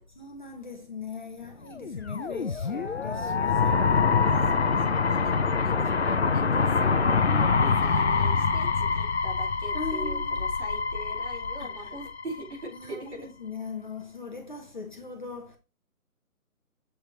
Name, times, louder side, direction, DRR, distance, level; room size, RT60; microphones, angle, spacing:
voice 1, 0.2-3.9 4.7-5.1 7.3-7.9 9.7-10.5 11.6-11.9 12.7-15.6, left 3 dB, 30° left, 0.9 m, -40 dB
sound 1, 1.7-12.7, left 5 dB, 50° left, 0.5 m, -25 dB
voice 2, 4.6-13.3, right 2 dB, 50° right, 4.5 m, -41 dB
7.7 x 3.6 x 4.3 m
hypercardioid pair, 170°, 44 cm